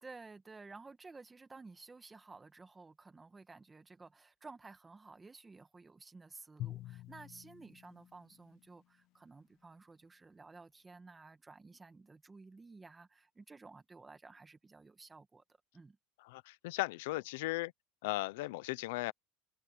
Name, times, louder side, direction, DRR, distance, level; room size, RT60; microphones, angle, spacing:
voice 1, 0.0-15.4 15.7-16.0, right 3 dB, 15° right, 2.0 m, -54 dB
Drum, 6.6-9.0, left 14 dB, 50° left, 1.0 m, -47 dB
voice 2, 16.2-17.7 18.0-19.1, left 20 dB, 80° left, 0.7 m, -37 dB
supercardioid pair, 135°, 0 cm